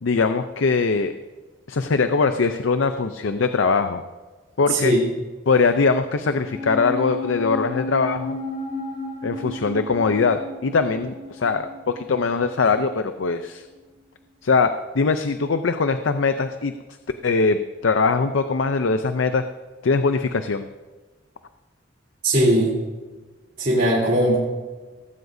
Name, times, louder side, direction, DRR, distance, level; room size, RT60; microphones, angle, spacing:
voice 1, 0.0-1.1 1.7-4.0 4.6-4.9 5.5-8.4 9.2-13.6 14.4-16.7 17.2-19.4 19.8-20.6, left 4 dB, 80° left, 9 dB, 0.6 m, -21 dB
voice 2, 4.7-5.0 22.2-22.7 23.6-24.4, right 1 dB, 45° right, -7 dB, 3.5 m, -19 dB
sound 1, 6.4-13.0 13.2-13.3, left 2 dB, 45° left, 3.6 m, -33 dB
17.5 x 16.0 x 2.7 m, 1.3 s
head